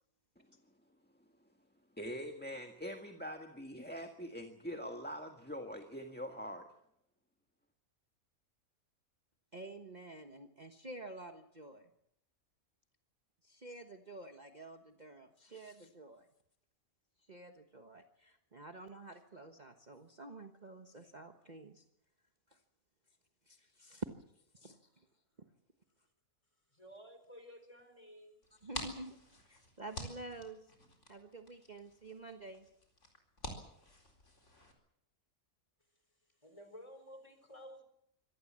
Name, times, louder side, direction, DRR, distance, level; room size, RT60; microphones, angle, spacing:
voice 1, 2.0-6.7, equal, 5° left, 4 dB, 1.5 m, -43 dB
voice 2, 9.5-11.9 13.4-16.3 17.3-21.8 22.5-22.6 23.5-24.1 24.5-25.1 28.6-29.2 29.4-30.7 31.1-32.6, right 2 dB, 30° right, 5 dB, 1.4 m, -49 dB
voice 3, 26.7-28.4 36.4-37.8, equal, 20° left, 8 dB, 4.4 m, -53 dB
sound 1, 28.4-34.7, left 1 dB, 55° left, 4.5 m, -49 dB
25.0 x 18.0 x 7.5 m, 0.78 s
omnidirectional pair, 1.5 m